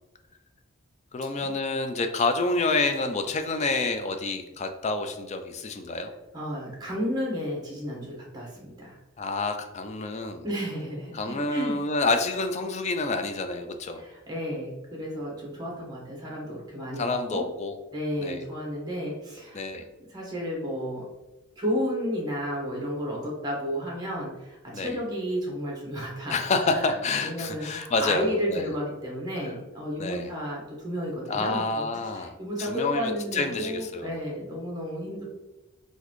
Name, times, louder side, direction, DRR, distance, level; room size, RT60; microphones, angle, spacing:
voice 1, 1.1-6.1 9.2-10.5 11.1-14.0 17.0-17.8 18.2-18.4 19.5-19.9 24.7-25.0 26.3-28.7 30.0-30.3 31.3-34.2, left 3 dB, 35° left, 7 dB, 0.3 m, -28 dB
voice 2, 6.3-9.0 10.4-11.8 14.0-17.5 17.9-19.6 20.1-21.0 21.6-26.4 26.9-27.0 27.2-31.8 32.1-35.2, equal, 20° right, -2 dB, 1.1 m, -32 dB
3.9 x 2.6 x 3.1 m, 1.1 s
head